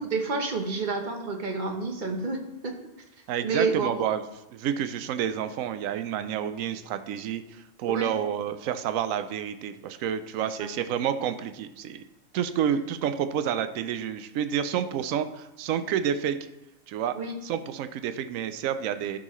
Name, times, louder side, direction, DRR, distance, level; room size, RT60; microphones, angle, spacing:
voice 1, 0.0-2.8 3.4-4.0 7.8-8.1 10.6-10.7 17.2-17.4, right 4 dB, 40° right, 3 dB, 1.0 m, -29 dB
voice 2, 3.3-4.2 4.5-12.0 12.3-16.4 16.9-17.2 17.4-19.2, right 9 dB, 75° right, 10 dB, 1.0 m, -29 dB
11.5 x 6.2 x 3.1 m, 0.92 s
omnidirectional pair, 1.4 m